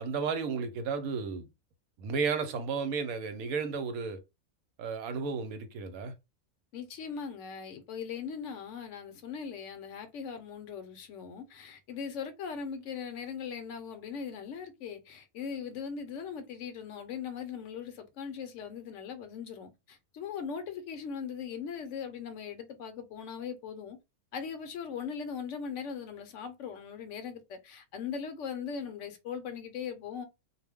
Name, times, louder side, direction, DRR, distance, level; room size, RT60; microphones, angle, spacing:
voice 1, 0.0-1.5 2.0-4.2 4.8-6.1, right 5 dB, 90° right, 1.1 m, -33 dB
voice 2, 6.7-24.0 24.3-30.2, left 6 dB, 70° left, 0.8 m, -39 dB
2.4 x 2.1 x 3.4 m
omnidirectional pair, 1.5 m